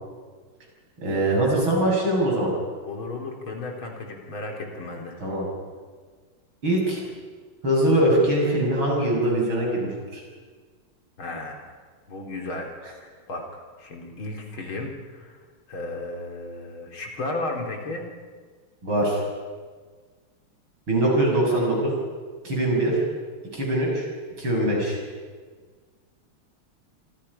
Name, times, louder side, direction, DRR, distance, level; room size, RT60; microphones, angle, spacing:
voice 1, 1.0-2.5 5.2-5.5 6.6-7.0 7.6-10.2 18.8-19.2 20.9-21.9 22.4-23.0 23.5-24.1 24.4-25.0, right 1 dB, 70° right, -2 dB, 7.9 m, -22 dB
voice 2, 2.9-5.3 11.2-11.8 12.1-12.7 13.3-15.4 15.7-18.0, left 2 dB, 65° left, 2 dB, 4.1 m, -34 dB
28.5 x 25.0 x 5.6 m, 1.5 s
omnidirectional pair, 2.4 m